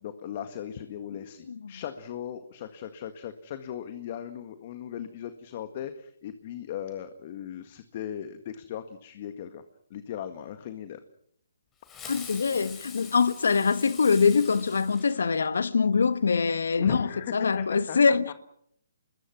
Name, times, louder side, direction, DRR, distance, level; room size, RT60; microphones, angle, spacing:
voice 1, 0.0-9.6 9.9-11.0 16.8-18.3, left 9 dB, 40° left, 1.8 m, -38 dB
Fireworks, 11.8-15.7, left 5 dB, 15° left, 5.3 m, -44 dB
voice 2, 12.1-18.3, left 5 dB, 75° left, 1.3 m, -24 dB
26.5 x 21.5 x 6.0 m
hypercardioid pair, 150°, 0 cm